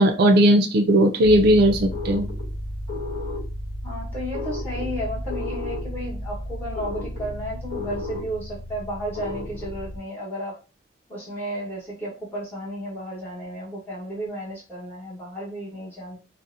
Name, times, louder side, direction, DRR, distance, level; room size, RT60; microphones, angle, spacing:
voice 1, 0.0-2.2, right 1 dB, 60° right, 4 dB, 0.4 m, -17 dB
sound 1, 1.2-10.0, left 1 dB, 70° left, 1.0 m, -32 dB
voice 2, 3.8-10.6 11.1-16.2, equal, 10° left, -6 dB, 1.0 m, -33 dB
2.6 x 2.1 x 2.4 m, 0.32 s
head